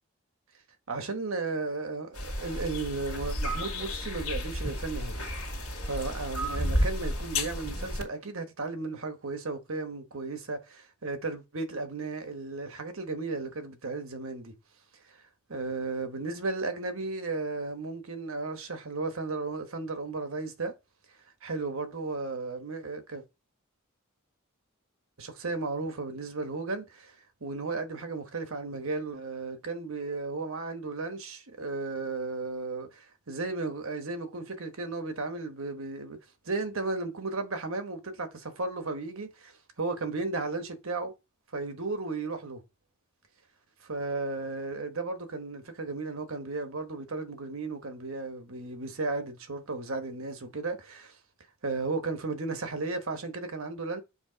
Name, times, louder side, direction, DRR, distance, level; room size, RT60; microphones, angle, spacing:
voice 1, 0.9-5.2 5.5-14.5 15.1-15.2 15.5-20.7 21.4-23.2 25.2-27.1 27.4-36.2 36.4-39.5 39.8-41.1 41.5-42.6 43.8-51.2 51.6-54.0, right 3 dB, 65° right, 1.2 m, -34 dB
sound 1, 2.1-8.0, left 1 dB, 85° left, 2.1 m, -32 dB
7.1 x 2.8 x 5.0 m
head